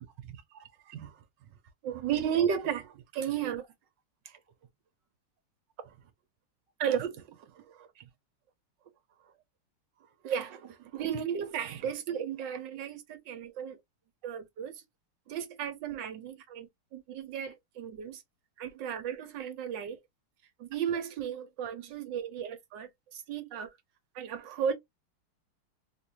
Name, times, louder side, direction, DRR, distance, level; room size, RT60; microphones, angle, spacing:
voice 1, 0.2-1.2 1.8-3.6 4.3-4.4 5.8-5.9 6.8-8.1 10.2-13.8 14.2-14.8 15.3-18.2 18.6-20.0 20.6-23.7 24.1-24.8, right 8 dB, 65° right, 1.3 m, -35 dB
3.7 x 2.5 x 2.9 m
omnidirectional pair, 2.3 m